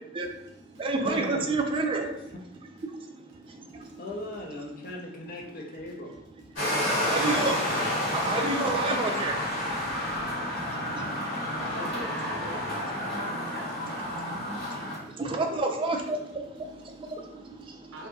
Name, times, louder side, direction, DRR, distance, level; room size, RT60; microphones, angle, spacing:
voice 1, 0.1-2.0 2.8-3.0 3.5-4.0 7.1-7.6 7.9-11.8 13.8-16.2 16.6-18.1, right 3 dB, 30° right, 0.3 m, -31 dB
voice 2, 1.0-1.6 1.9-2.1 4.0-6.2 6.6-7.5, left 2 dB, 50° left, 0.5 m, -38 dB
voice 3, 3.7-4.0 8.0-8.1 9.9-10.1 10.8-14.2 14.6-14.7 17.9-18.1, right 1 dB, 85° right, 0.6 m, -44 dB
sound 1, 6.6-15.0, left 1 dB, 80° left, 1.4 m, -30 dB
2.7 x 2.6 x 2.2 m
head